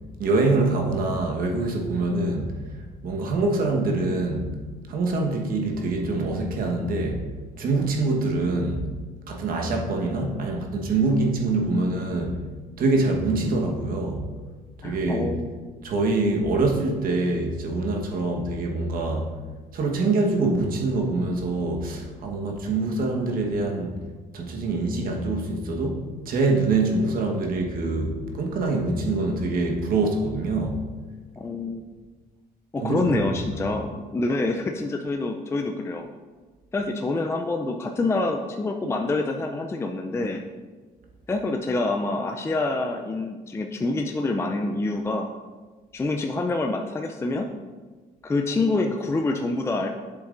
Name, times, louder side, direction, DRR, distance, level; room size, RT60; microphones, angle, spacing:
voice 1, 0.2-2.6 3.0-4.6 4.9-7.3 7.6-8.9 9.3-12.4 12.8-14.3 14.8-15.3 15.8-19.3 19.7-24.0 24.3-30.8 32.8-33.2 33.5-33.6, right 2 dB, 60° right, 1 dB, 1.2 m, -25 dB
voice 2, 14.8-15.6 31.4-31.8 32.7-36.1 36.7-40.4 41.3-45.3 45.9-47.5 48.2-49.9, left 2 dB, 15° left, 3 dB, 0.4 m, -26 dB
8.3 x 7.0 x 2.5 m, 1.4 s
cardioid pair, 110°, 17 cm